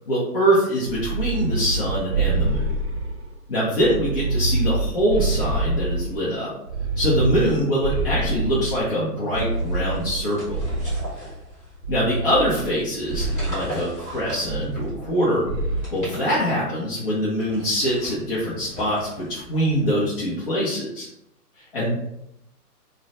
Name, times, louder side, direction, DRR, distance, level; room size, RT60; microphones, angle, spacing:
voice 1, 0.1-2.7 3.5-6.5 7.0-10.6 11.9-15.4 15.9-21.1 21.6-21.9, equal, 40° left, -8 dB, 0.5 m, -24 dB
sound 1, 0.8-3.3 3.8-6.2 6.7-8.8 9.3-11.2 11.8-12.8 13.1-13.6 14.5-15.2 15.5-15.9, right 2 dB, 45° right, 0.6 m, -26 dB
sound 2, 9.3-12.1 12.9-15.1 15.6-16.8 17.4-20.2, left 1 dB, 15° left, 1.0 m, -39 dB
2.3 x 2.0 x 2.7 m, 0.84 s
figure-of-eight pair, 135°, 48 cm